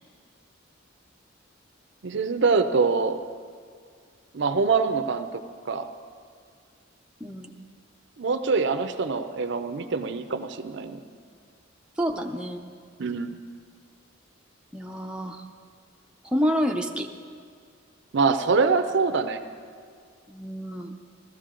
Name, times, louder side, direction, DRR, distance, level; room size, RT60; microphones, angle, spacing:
voice 1, 2.0-3.2 4.3-5.9 8.2-11.0 13.0-13.4 18.1-19.4, right 4 dB, 65° right, 9 dB, 0.6 m, -24 dB
voice 2, 7.2-7.6 12.0-12.6 14.7-15.4 16.2-17.1 20.3-20.9, equal, 5° right, 1 dB, 0.6 m, -28 dB
15.0 x 13.5 x 3.8 m, 2.1 s
head